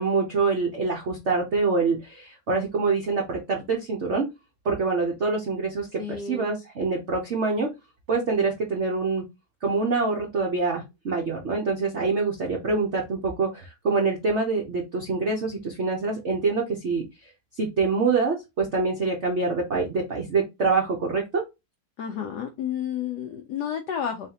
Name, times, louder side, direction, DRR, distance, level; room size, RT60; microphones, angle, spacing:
voice 1, 0.0-4.3 4.6-7.7 8.1-9.2 9.6-17.0 17.6-21.4, right 4 dB, 75° right, 0.6 m, -25 dB
voice 2, 6.0-6.6 22.0-24.3, left 8 dB, 80° left, 0.9 m, -31 dB
4.0 x 3.2 x 2.8 m
omnidirectional pair, 2.4 m